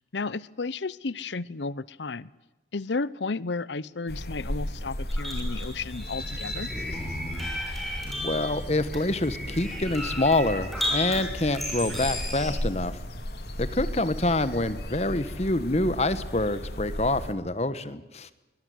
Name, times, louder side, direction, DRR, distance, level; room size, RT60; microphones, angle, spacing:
voice 1, 0.0-2.3 2.7-6.7, left 3 dB, 85° left, 19 dB, 0.8 m, -33 dB
sound 1, 4.1-17.3, left 1 dB, 65° left, 2.9 m, -36 dB
sound 2, 5.1-12.5, left 1 dB, ahead, 6.0 m, -34 dB
voice 2, 8.1-13.0 13.6-18.3, left 2 dB, 35° left, 13 dB, 1.4 m, -26 dB
23.5 x 19.0 x 9.6 m, 1.1 s
head